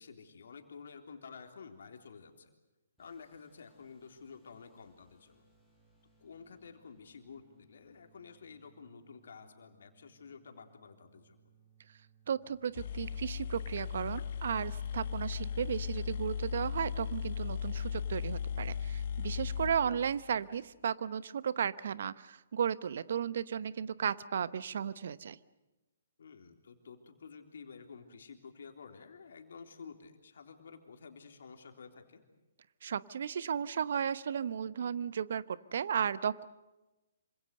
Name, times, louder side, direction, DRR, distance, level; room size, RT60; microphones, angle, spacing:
voice 1, 0.0-2.5 3.0-5.4 6.2-11.4 17.7-18.0 26.2-32.2, left 5 dB, 65° left, 5 dB, 3.6 m, -51 dB
sound 1, 3.0-17.3, right 5 dB, ahead, 6.5 m, -68 dB
voice 2, 12.3-25.4 32.8-36.5, right 8 dB, 60° right, 17 dB, 1.0 m, -34 dB
sound 2, 12.5-12.6 12.7-20.6, left 7 dB, 50° left, 1.4 m, -37 dB
27.0 x 25.5 x 6.7 m, 1.1 s
figure-of-eight pair, 135°, 0 cm